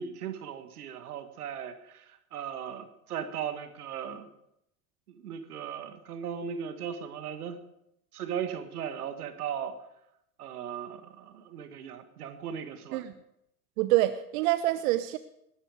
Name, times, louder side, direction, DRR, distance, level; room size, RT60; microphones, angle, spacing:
voice 1, 0.0-4.3 5.1-7.6 8.1-9.8 10.4-13.0, right 8 dB, 75° right, 9 dB, 1.7 m, -37 dB
voice 2, 13.8-15.2, right 16 dB, 60° right, 12 dB, 0.8 m, -26 dB
20.0 x 11.5 x 5.0 m, 0.80 s
hypercardioid pair, 85°, 45 cm